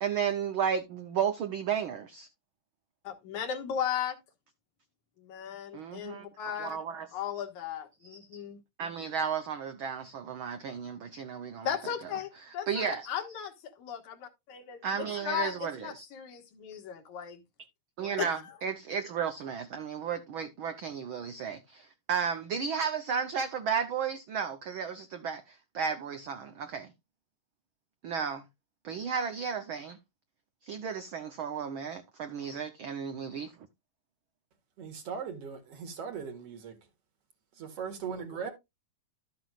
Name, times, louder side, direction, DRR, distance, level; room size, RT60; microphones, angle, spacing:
voice 1, 0.0-2.3 5.7-6.3 6.6-7.1 8.0-8.2 8.8-11.7 12.7-13.1 14.8-16.1 18.0-26.9 28.0-28.4 28.8-30.0 30.6-33.5, right 7 dB, 75° right, 1.1 m, -33 dB
voice 2, 3.0-4.2 5.2-6.8 7.1-8.6 11.6-17.4 18.2-18.5, left 9 dB, 80° left, 2.8 m, -36 dB
voice 3, 34.8-36.8 37.5-38.5, right 6 dB, 55° right, 2.6 m, -39 dB
12.5 x 7.7 x 2.4 m
omnidirectional pair, 3.3 m